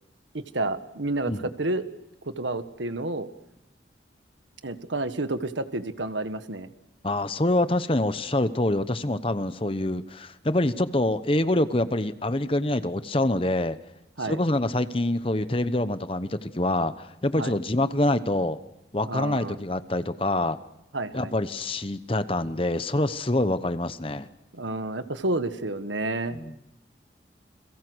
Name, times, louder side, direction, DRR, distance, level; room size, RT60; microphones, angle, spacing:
voice 1, 0.3-1.9 2.2-3.3 4.6-6.7 14.2-14.4 17.4-17.5 19.0-19.6 20.9-21.3 24.5-26.4, right 2 dB, 90° right, 10 dB, 1.6 m, -30 dB
voice 2, 7.0-13.8 14.2-18.6 18.9-20.6 21.1-24.3 26.3-26.5, left 1 dB, 30° left, 12 dB, 1.0 m, -26 dB
29.5 x 22.5 x 6.3 m, 0.87 s
head